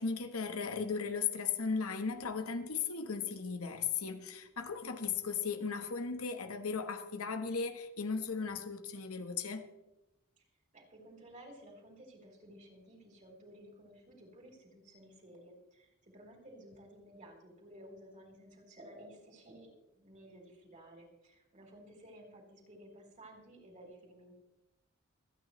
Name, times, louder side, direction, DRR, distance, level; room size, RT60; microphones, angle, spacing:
voice 1, 0.0-9.6, left 5 dB, 85° left, 1.2 m, -36 dB
voice 2, 10.7-24.4, right 1 dB, 35° right, 3.6 m, -55 dB
26.0 x 9.4 x 3.1 m
head